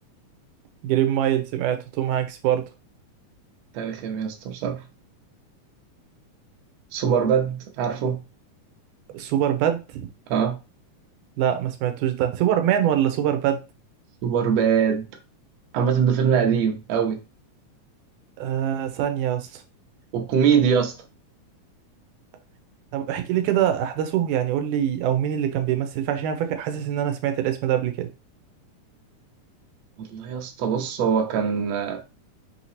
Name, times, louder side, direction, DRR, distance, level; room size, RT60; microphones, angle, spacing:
voice 1, 0.8-2.6 9.1-10.1 11.4-13.6 18.4-19.6 22.9-28.1, right 10 dB, 90° right, 2.1 m, -24 dB
voice 2, 3.7-4.8 6.9-8.2 10.3-10.6 14.2-15.0 15.7-17.2 20.1-20.9 30.0-32.2, right 7 dB, 70° right, 1.7 m, -23 dB
5.6 x 2.9 x 2.8 m
omnidirectional pair, 3.5 m